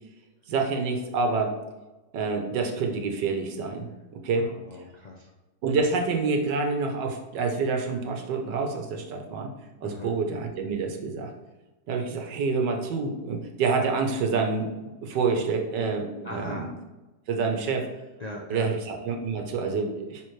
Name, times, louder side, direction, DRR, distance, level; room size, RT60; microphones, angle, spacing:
voice 1, 0.5-1.5 2.1-3.9 4.1-4.5 5.6-9.5 9.8-11.3 11.9-14.7 15.0-16.7 17.3-17.9 18.5-20.2, right 4 dB, 75° right, 4 dB, 1.6 m, -27 dB
voice 2, 4.3-5.3 9.8-10.1 16.2-16.7 18.2-18.7, left 1 dB, 60° left, -2 dB, 0.4 m, -39 dB
10.5 x 4.1 x 3.2 m, 1.1 s
omnidirectional pair, 1.9 m